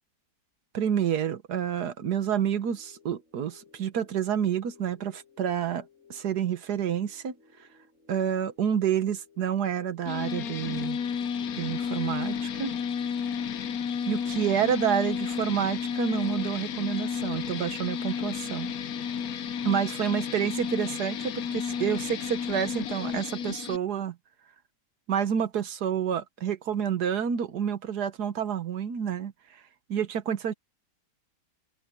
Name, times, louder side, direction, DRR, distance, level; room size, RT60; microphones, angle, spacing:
voice 1, 0.7-5.8 6.1-7.3 8.1-11.0 11.5-12.7 14.1-18.7 19.6-24.2 25.1-29.3 29.9-30.5, right 8 dB, 70° right, 1.7 m, -29 dB
sound 1, 2.7-19.2, left 6 dB, 45° right, 7.6 m, -58 dB
sound 2, 10.1-23.8, left 7 dB, 65° left, 1.2 m, -32 dB
omnidirectional pair, 1.8 m